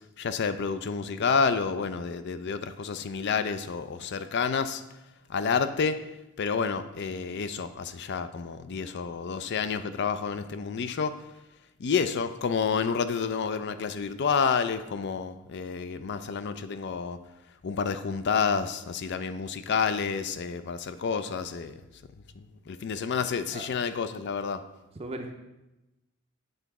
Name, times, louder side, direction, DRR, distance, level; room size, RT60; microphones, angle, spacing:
voice 1, 0.2-4.8 5.3-6.0 6.4-11.2 11.8-17.2 17.6-21.7 22.4-24.6, left 5 dB, 55° left, 11 dB, 0.4 m, -29 dB
voice 2, 25.0-25.3, right 2 dB, 30° right, 4 dB, 0.5 m, -37 dB
7.9 x 4.0 x 4.7 m, 0.97 s
head